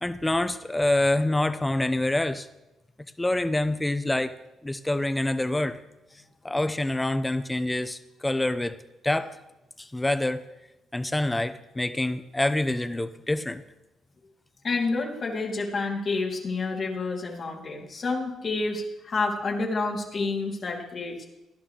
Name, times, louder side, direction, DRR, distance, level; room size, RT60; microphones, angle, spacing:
voice 1, 0.0-2.5 3.2-4.3 4.6-5.8 6.4-8.8 9.0-9.3 9.8-10.4 10.9-13.6, left 1 dB, 10° left, 11 dB, 0.8 m, -26 dB
voice 2, 14.6-21.2, left 3 dB, 45° left, -1 dB, 2.9 m, -29 dB
17.0 x 11.5 x 3.3 m, 0.98 s
cardioid pair, 90°, 0 cm